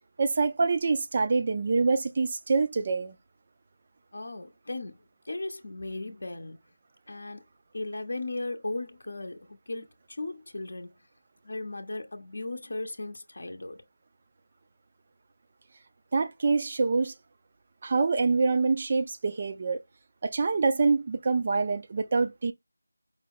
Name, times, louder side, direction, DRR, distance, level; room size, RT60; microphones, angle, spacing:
voice 1, 0.2-3.2 16.1-17.1 17.8-19.8 20.2-22.5, right 4 dB, 30° right, 0.5 m, -25 dB
voice 2, 4.1-5.0 5.2-6.6 7.1-7.4 7.7-10.9 11.4-13.8, left 2 dB, 50° left, 0.7 m, -36 dB
4.8 x 2.2 x 3.5 m
figure-of-eight pair, 170°, 0 cm